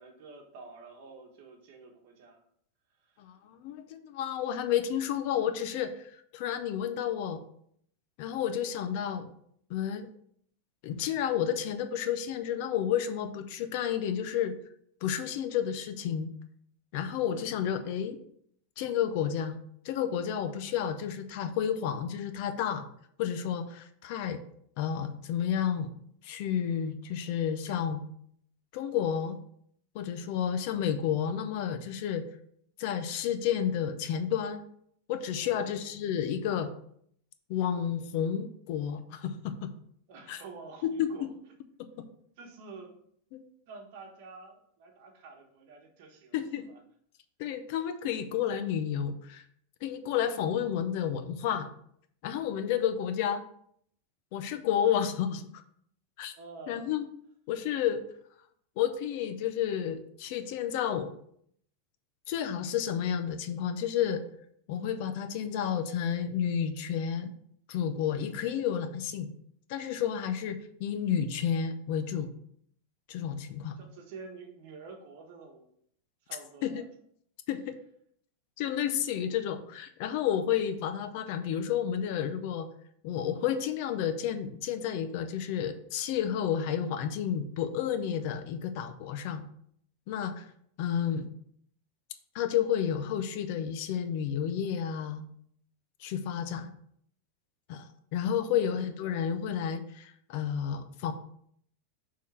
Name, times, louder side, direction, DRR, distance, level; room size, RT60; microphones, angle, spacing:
voice 1, 0.0-2.4 3.0-3.2 17.3-17.5 35.4-35.8 40.1-41.2 42.4-42.9 43.7-46.8 56.4-56.9 73.8-75.7 76.3-76.8 98.3-98.7, right 4 dB, 50° right, 2 dB, 1.3 m, -49 dB
voice 2, 3.2-7.4 8.2-9.3 9.7-10.1 10.8-14.6 15.0-16.3 16.9-18.2 18.8-19.6 19.8-22.9 23.2-24.4 24.8-25.9 26.2-28.0 28.7-29.4 29.9-32.2 32.8-34.6 35.1-36.7 37.5-39.7 40.3-40.4 40.8-41.3 41.8-42.0 43.3-43.4 46.3-46.7 47.4-49.4 49.8-51.7 52.2-53.4 54.3-55.5 56.2-56.3 56.7-57.1 57.5-58.0 58.8-61.1 62.3-64.2 64.7-67.3 67.7-69.3 69.7-72.3 73.1-73.8 76.6-76.8 77.5-77.8 78.6-82.7 83.0-89.4 90.1-90.4 90.8-91.3 92.3-95.2 96.0-96.7 97.7-101.1, left 9 dB, 45° left, 9 dB, 0.5 m, -31 dB
6.4 x 3.7 x 4.3 m, 0.67 s
supercardioid pair, 175°, 0 cm